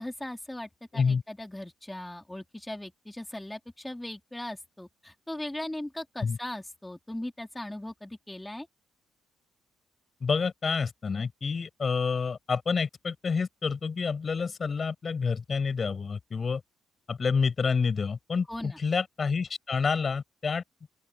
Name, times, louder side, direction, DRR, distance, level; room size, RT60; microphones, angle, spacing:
voice 1, 0.0-8.7 18.5-18.8, left 1 dB, 10° left, 2.5 m, -39 dB
voice 2, 10.2-16.6 17.1-20.6, left 5 dB, 40° left, 5.4 m, -28 dB
open air
cardioid pair, 90°, 0 cm